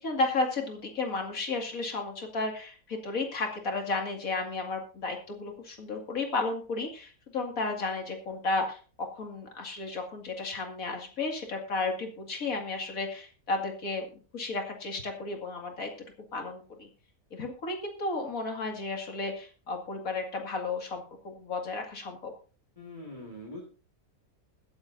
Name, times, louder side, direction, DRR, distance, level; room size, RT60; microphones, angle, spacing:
voice 1, 0.0-14.0 14.3-15.9 16.3-16.9 17.3-22.3, left 3 dB, 65° left, 2 dB, 2.7 m, -33 dB
voice 2, 22.8-23.6, left 1 dB, 25° left, -2 dB, 2.2 m, -42 dB
22.0 x 7.9 x 2.7 m, 0.38 s
omnidirectional pair, 1.6 m